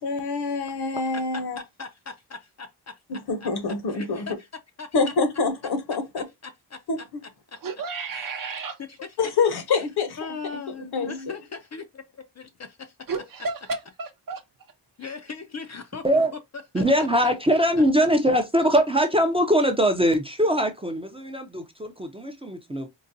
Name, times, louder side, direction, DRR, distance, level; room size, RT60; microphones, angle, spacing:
voice 1, 0.0-1.6 3.1-4.3 4.9-6.2 6.9-7.0 9.2-10.2 10.9-11.3, left 4 dB, 60° left, 0.8 m, -26 dB
voice 2, 1.6-3.0 3.4-3.5 3.9-4.3 4.8-4.9 6.4-6.8 7.5-7.6 8.1-8.3 8.8-9.0 9.7-9.8 10.2-12.9 15.0-16.2 16.7-17.3, left 5 dB, 40° left, 0.5 m, -39 dB
voice 3, 7.6-8.8 13.1-14.4, right 4 dB, 50° right, 0.8 m, -32 dB
voice 4, 16.7-22.9, equal, 15° right, 0.5 m, -22 dB
3.9 x 2.2 x 2.6 m
cardioid pair, 90°, 44 cm